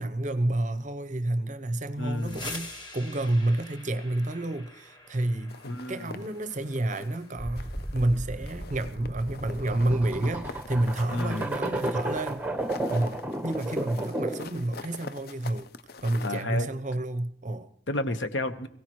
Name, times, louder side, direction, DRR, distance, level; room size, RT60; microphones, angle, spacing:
voice 1, 0.0-5.6 5.9-12.5 12.9-15.7 16.0-17.7, right 1 dB, 40° right, 0.7 m, -29 dB
sound 1, 1.9-11.7, left 2 dB, 25° left, 1.5 m, -47 dB
voice 2, 2.0-2.4 5.6-6.2 11.1-11.5 16.2-16.7 17.9-18.7, left 1 dB, 70° left, 1.1 m, -31 dB
sound 2, 5.5-7.2 7.6-8.2 8.5-16.4, left 4 dB, 50° left, 0.5 m, -44 dB
sound 3, 7.4-14.5, right 1 dB, 10° right, 1.1 m, -33 dB
22.0 x 16.5 x 3.1 m
head